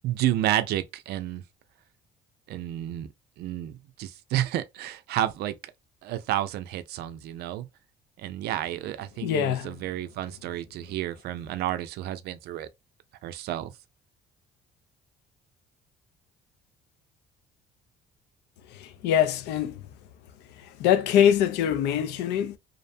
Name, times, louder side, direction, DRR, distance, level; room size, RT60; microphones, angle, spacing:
voice 1, 0.0-1.4 2.5-3.1 3.4-5.6 6.0-7.7 8.2-12.7 13.2-13.7, right 13 dB, 75° right, 0.4 m, -30 dB
voice 2, 9.2-9.7 18.8-19.7 20.8-22.6, left 9 dB, 90° left, 0.4 m, -23 dB
2.6 x 2.1 x 2.6 m
cardioid pair, 110°, 17 cm